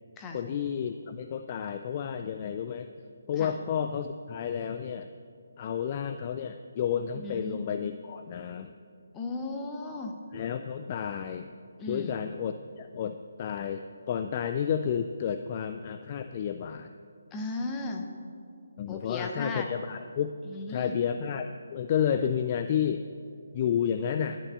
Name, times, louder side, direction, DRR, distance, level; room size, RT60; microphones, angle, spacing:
voice 1, 0.3-2.9 3.3-5.1 5.6-8.7 10.3-11.5 11.9-16.9 18.8-20.3 20.7-23.1 23.5-24.4, left 8 dB, 30° left, 8 dB, 0.3 m, -31 dB
voice 2, 7.1-7.7 9.1-10.1 11.8-12.2 17.3-18.1 18.9-19.7 20.4-21.0, left 2 dB, 15° left, 2 dB, 0.9 m, -36 dB
10.5 x 6.1 x 7.9 m, 2.3 s
figure-of-eight pair, 145°, 0 cm